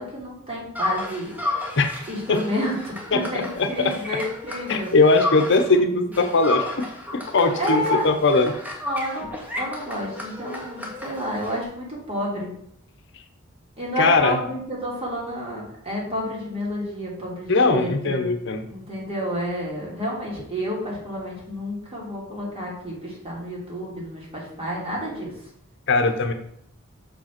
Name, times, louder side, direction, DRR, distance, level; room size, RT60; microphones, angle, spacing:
voice 1, 0.0-1.3 2.1-4.9 7.5-8.0 8.8-12.5 13.8-18.3 18.7-25.3, equal, 30° right, -4 dB, 3.2 m, -30 dB
sound 1, 0.7-5.8 6.1-11.6, left 2 dB, 10° right, 1.4 m, -32 dB
voice 2, 3.1-3.9 4.7-6.7 7.1-8.5 14.0-14.4 17.5-18.6 25.9-26.3, left 3 dB, 60° left, 6 dB, 0.8 m, -20 dB
6.5 x 5.3 x 5.9 m, 0.72 s
head